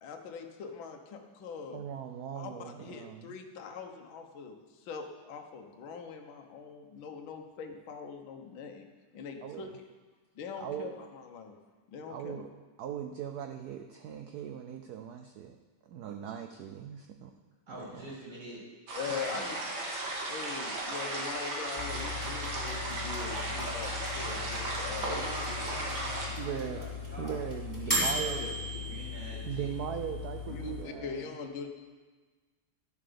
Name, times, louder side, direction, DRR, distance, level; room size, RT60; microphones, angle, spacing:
voice 1, 0.0-1.9 2.3-4.6 4.8-8.9 9.1-9.7 10.4-11.6 11.9-12.5 19.0-19.6 20.3-25.7 28.4-28.5 30.5-31.7, left 6 dB, 65° left, 4 dB, 1.8 m, -42 dB
voice 2, 1.7-3.4 9.4-9.7 10.6-10.9 12.1-12.5 12.8-15.6 15.8-17.3 17.7-18.1 22.8-23.0 23.5-23.7 26.4-26.9 27.2-28.5 29.4-31.3, right 9 dB, 90° right, 6 dB, 0.8 m, -39 dB
voice 3, 17.7-18.6 19.0-19.5 25.0-27.4 27.9-29.7, right 1 dB, 45° right, -6 dB, 4.5 m, -44 dB
sound 1, 18.9-26.3, right 2 dB, 60° right, 2.8 m, -36 dB
sound 2, 21.8-30.8, left 2 dB, 10° right, 3.3 m, -37 dB
12.0 x 7.5 x 6.8 m, 1.3 s
omnidirectional pair, 2.4 m